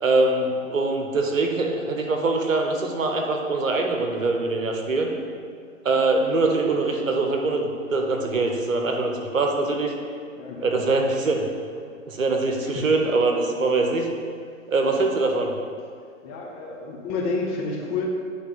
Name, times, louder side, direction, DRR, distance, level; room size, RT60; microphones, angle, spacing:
voice 1, 0.0-5.1 5.8-9.9 10.6-11.4 12.1-14.1 14.7-15.5, right 3 dB, 75° right, 3 dB, 1.1 m, -23 dB
voice 2, 10.4-10.8 12.6-13.1 16.2-18.0, left 4 dB, 25° left, -1 dB, 0.8 m, -30 dB
9.7 x 3.3 x 4.0 m, 2.1 s
figure-of-eight pair, 120°, 40 cm